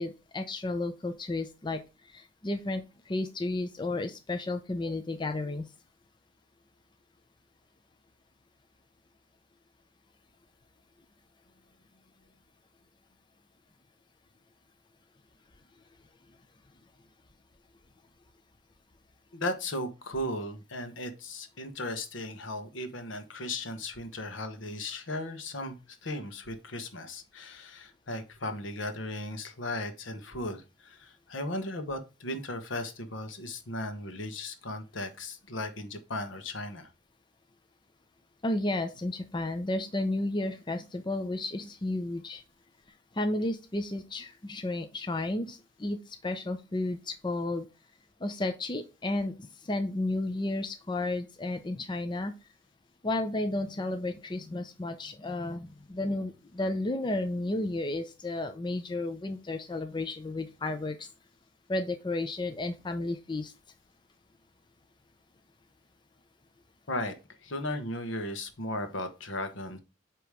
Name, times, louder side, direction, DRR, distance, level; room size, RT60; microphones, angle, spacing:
voice 1, 0.0-5.7 38.4-42.4 43.1-47.7 48.2-52.3 53.0-61.1 61.7-63.5, left 2 dB, 25° left, 7 dB, 0.5 m, -32 dB
voice 2, 19.3-36.9 66.9-67.1 67.4-69.8, left 1 dB, 75° left, 8 dB, 1.2 m, -36 dB
8.3 x 3.0 x 4.8 m, 0.29 s
head